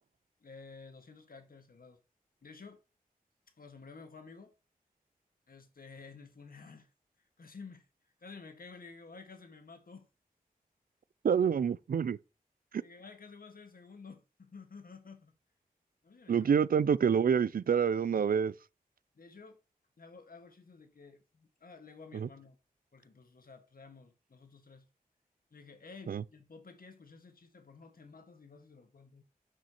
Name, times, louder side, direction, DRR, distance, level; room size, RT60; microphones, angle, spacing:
voice 1, 0.4-2.0 2.4-2.8 3.6-4.5 5.5-6.9 7.4-7.8 8.2-10.1 12.8-15.3 16.0-16.5 19.1-19.6 20.0-22.6 22.9-24.8 25.5-29.2, left 4 dB, 75° left, 1.6 m, -52 dB
voice 2, 11.2-12.2 16.3-18.5 22.1-22.3 26.1-26.2, right 7 dB, 75° right, 0.4 m, -27 dB
6.6 x 6.3 x 2.9 m
wide cardioid pair, 75°, 15 cm